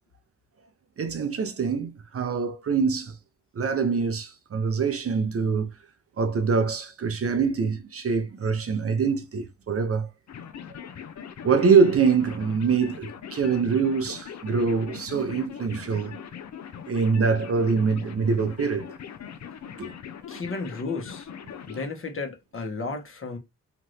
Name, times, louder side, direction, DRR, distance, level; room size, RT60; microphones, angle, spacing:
voice 1, 1.0-3.1 3.6-5.7 6.2-10.1 11.4-16.2 16.9-18.9 19.8-19.9, right 5 dB, 45° right, 0.7 m, -24 dB
sound 1, 10.3-21.9, left 8 dB, 55° left, 0.7 m, -41 dB
voice 2, 20.3-21.3 21.7-23.4, left 3 dB, 40° left, 1.2 m, -33 dB
2.9 x 2.5 x 3.2 m
supercardioid pair, 45°, 32 cm